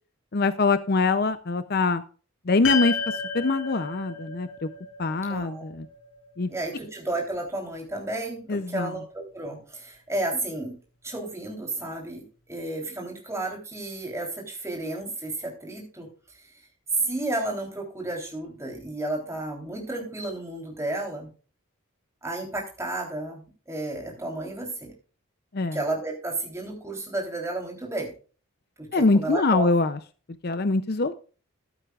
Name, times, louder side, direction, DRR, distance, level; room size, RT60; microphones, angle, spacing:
voice 1, 0.3-2.0 2.5-4.7 5.0-5.9 6.4-6.5 8.5-8.9 25.5-25.8 28.9-30.0 30.4-31.1, left 3 dB, 45° left, 12 dB, 0.5 m, -24 dB
sound 1, 2.6-7.1, left 6 dB, 70° left, 5.7 m, -33 dB
voice 2, 5.3-5.6 6.5-10.8 11.0-16.1 17.0-21.3 22.2-24.9 25.7-28.1 28.8-29.7, right 2 dB, 15° right, 0 dB, 3.4 m, -32 dB
14.0 x 11.0 x 2.4 m, 0.38 s
head